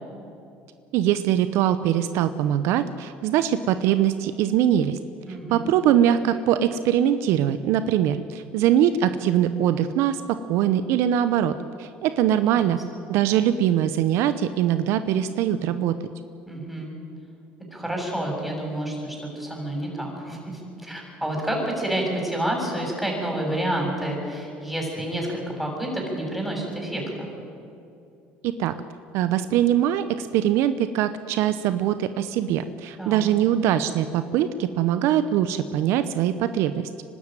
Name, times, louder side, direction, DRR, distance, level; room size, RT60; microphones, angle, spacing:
voice 1, 0.9-5.0 5.5-12.8 13.1-15.9 28.4-28.7 29.1-36.9, right 10 dB, 70° right, 12 dB, 0.8 m, -22 dB
voice 2, 5.3-5.6 12.5-13.0 16.5-16.9 17.7-27.3 33.0-33.3, right 1 dB, 5° right, -1 dB, 7.1 m, -29 dB
24.0 x 12.5 x 9.2 m, 2.6 s
supercardioid pair, 85°, 5 cm